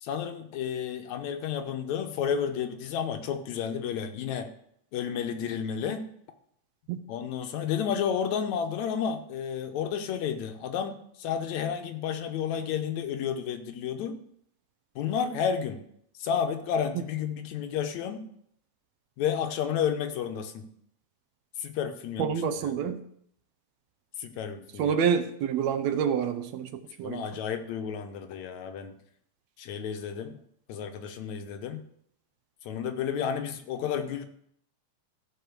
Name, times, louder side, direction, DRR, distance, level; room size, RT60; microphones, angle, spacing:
voice 1, 0.0-4.5 4.9-6.0 7.1-14.2 15.0-15.8 16.2-18.2 19.2-20.7 21.6-22.3 24.2-24.9 27.0-28.9 29.6-30.4 30.7-31.8 32.7-34.3, left 8 dB, 80° left, 7 dB, 2.2 m, -31 dB
voice 2, 22.2-23.0 24.8-27.2, right 7 dB, 75° right, 9 dB, 1.9 m, -28 dB
14.0 x 5.3 x 6.6 m, 0.69 s
omnidirectional pair, 3.3 m